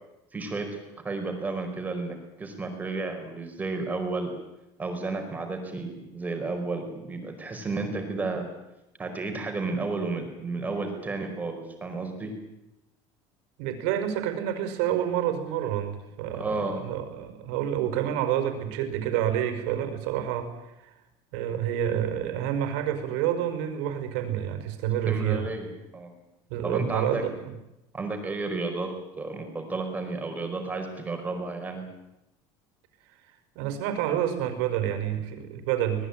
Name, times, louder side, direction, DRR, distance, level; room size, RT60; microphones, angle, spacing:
voice 1, 0.3-0.7 1.0-4.3 4.8-8.4 9.0-12.3 16.4-16.8 25.1-26.1 26.6-27.2 27.9-28.9 29.2-31.8, right 3 dB, 15° right, 4 dB, 4.9 m, -32 dB
voice 2, 13.6-20.5 20.8-20.9 21.3-25.5 26.5-27.5 33.6-36.1, right 10 dB, 85° right, 8 dB, 5.4 m, -28 dB
25.5 x 20.0 x 9.1 m, 0.93 s
cardioid pair, 165°, 11 cm